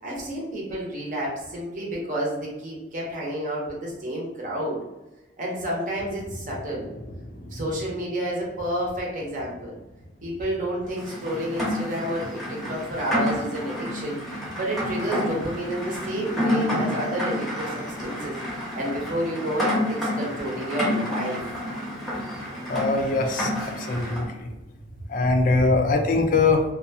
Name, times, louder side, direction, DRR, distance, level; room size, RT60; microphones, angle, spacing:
voice 1, 0.0-4.8 5.4-6.9 7.5-9.8 10.2-14.2 14.5-18.4 18.7-21.4, right 1 dB, 50° right, -3 dB, 0.8 m, -30 dB
Rain, 10.9-24.3, left 1 dB, ahead, 0.8 m, -29 dB
voice 2, 22.7-23.5 23.8-24.3 25.1-26.6, left 3 dB, 50° left, 5 dB, 0.4 m, -21 dB
2.6 x 2.2 x 2.7 m, 1.0 s
head